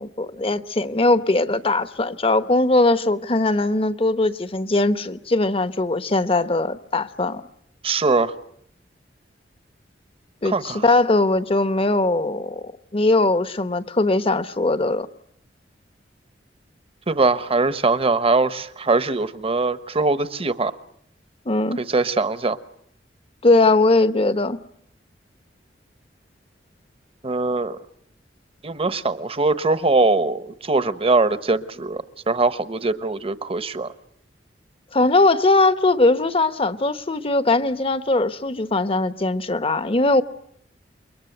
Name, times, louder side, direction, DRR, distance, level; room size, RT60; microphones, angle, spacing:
voice 1, 0.0-7.4 10.4-12.6 12.9-15.1 21.5-21.8 23.4-24.6 34.9-40.2, left 2 dB, 30° left, 1.1 m, -20 dB
voice 2, 7.8-8.3 10.4-10.8 17.1-20.7 21.8-22.6 27.2-27.8 28.6-33.9, right 3 dB, 35° right, 1.1 m, -21 dB
29.0 x 23.5 x 8.0 m
head